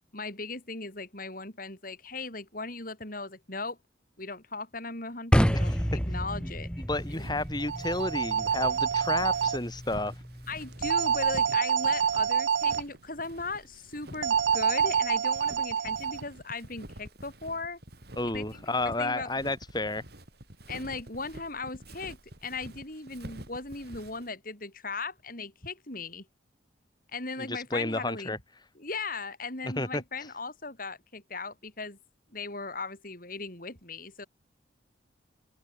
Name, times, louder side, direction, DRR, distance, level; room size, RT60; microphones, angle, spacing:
voice 1, 0.1-3.8 4.2-6.7 7.1-7.2 10.5-17.8 18.3-19.3 20.7-26.3 27.1-28.3 28.7-32.0 32.3-34.3, left 3 dB, 50° left, 6.5 m, -38 dB
sound 1, 5.3-11.4, equal, 5° left, 3.2 m, -31 dB
voice 2, 6.9-10.1 18.2-20.0 27.4-28.4 29.8-30.0, left 2 dB, 20° left, 2.9 m, -31 dB
Walk footsteps, 6.9-24.3, right 1 dB, 55° right, 6.5 m, -48 dB
sound 2, 7.6-9.6 10.8-12.8 14.2-16.2, right 7 dB, 75° right, 0.5 m, -27 dB
head